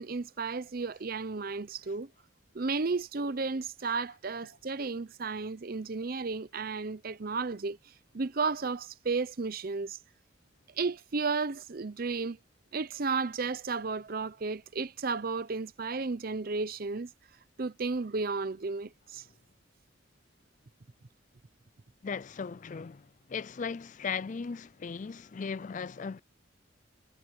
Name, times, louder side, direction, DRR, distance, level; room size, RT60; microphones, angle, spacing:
voice 1, 0.0-2.1 2.5-7.8 8.1-10.0 10.8-12.4 12.7-17.1 17.6-19.2, right 4 dB, 50° right, 0.7 m, -33 dB
voice 2, 22.0-26.2, left 5 dB, 40° left, 0.4 m, -37 dB
head